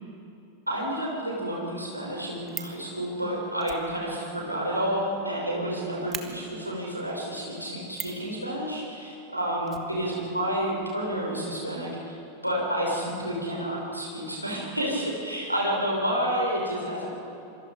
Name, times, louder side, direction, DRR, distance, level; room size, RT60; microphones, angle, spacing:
voice 1, 0.7-12.1 12.4-17.2, equal, 90° right, -3 dB, 6.3 m, -30 dB
Fire, 2.1-2.8 3.6-5.4 5.6-5.7 6.1-6.3 7.9-8.3 9.7-10.6 10.8-10.9 11.1-11.2, right 9 dB, 25° right, 1.9 m, -39 dB
26.5 x 24.5 x 5.3 m, 2.8 s
figure-of-eight pair, 90°, 0 cm